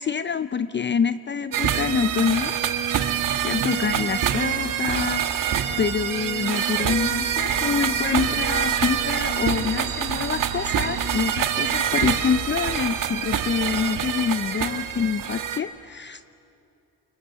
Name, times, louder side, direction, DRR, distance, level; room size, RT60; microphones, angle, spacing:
voice 1, 0.0-2.5 3.4-16.2, left 6 dB, 30° left, 14 dB, 0.6 m, -26 dB
sound 1, 1.5-15.6, right 9 dB, 60° right, 1.9 m, -25 dB
29.0 x 22.5 x 8.3 m, 2.7 s
supercardioid pair, 65°, 37 cm